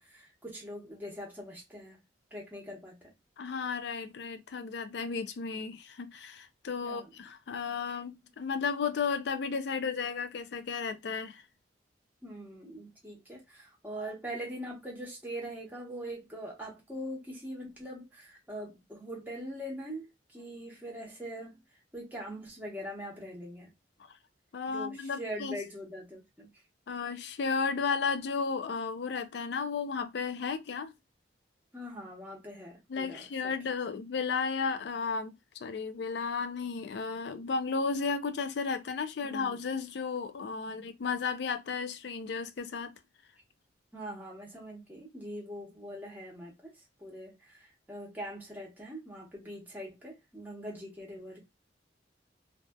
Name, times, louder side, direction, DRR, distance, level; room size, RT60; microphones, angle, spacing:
voice 1, 0.0-2.0 2.3-3.1 6.8-7.1 7.9-8.0 12.2-21.6 21.9-23.7 24.7-26.5 31.7-33.5 39.2-39.6 40.6-40.9 43.9-46.7 47.0-51.4, equal, 10° right, 0.9 m, -42 dB
voice 2, 3.4-11.4 24.5-25.6 26.9-30.9 32.9-35.3 35.6-42.9, left 5 dB, 70° left, 0.4 m, -33 dB
2.6 x 2.3 x 2.2 m
head